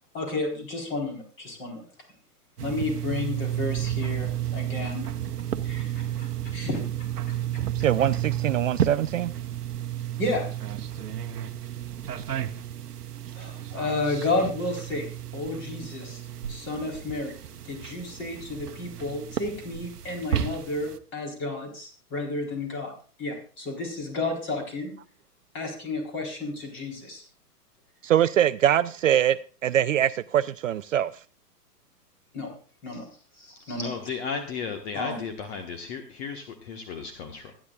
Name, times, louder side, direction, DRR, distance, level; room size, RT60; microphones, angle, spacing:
voice 1, 0.1-1.8 2.6-5.1 5.6-6.8 7.2-7.3 10.2-10.4 13.3-15.1 15.3-16.2 16.5-17.3 17.7-22.9 23.2-24.9 25.5-27.2 32.3-32.5 32.8-33.1 33.4-33.9 34.9-35.2, left 2 dB, 25° left, 4.1 m, -31 dB
sound 1, 2.6-21.0, right 11 dB, 75° right, 0.9 m, -32 dB
voice 2, 7.8-9.3 28.0-31.1, right 11 dB, 55° right, 0.5 m, -23 dB
voice 3, 33.8-37.5, left 5 dB, 40° left, 1.6 m, -34 dB
25.5 x 10.0 x 2.5 m
figure-of-eight pair, 115°, 48 cm